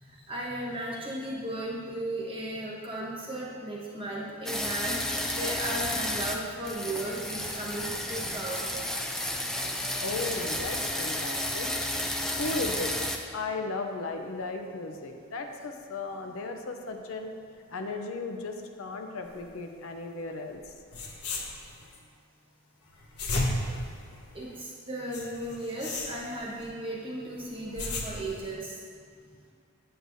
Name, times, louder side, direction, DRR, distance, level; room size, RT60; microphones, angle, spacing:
voice 1, 0.0-8.7 9.7-9.8 16.1-16.3 24.3-28.8, right 1 dB, 25° right, -4 dB, 1.2 m, -36 dB
sound 1, 4.4-6.3 6.6-13.2, left 1 dB, ahead, 0.3 m, -32 dB
voice 2, 10.0-11.7 12.4-12.9 13.3-17.3 17.7-20.7, left 3 dB, 65° left, 4 dB, 0.5 m, -35 dB
sound 2, 20.6-20.7 20.9-22.0 22.9-24.6 25.1-26.7 27.4-28.5, left 2 dB, 90° left, 1.0 m, -34 dB
7.9 x 7.7 x 2.7 m, 2.2 s
head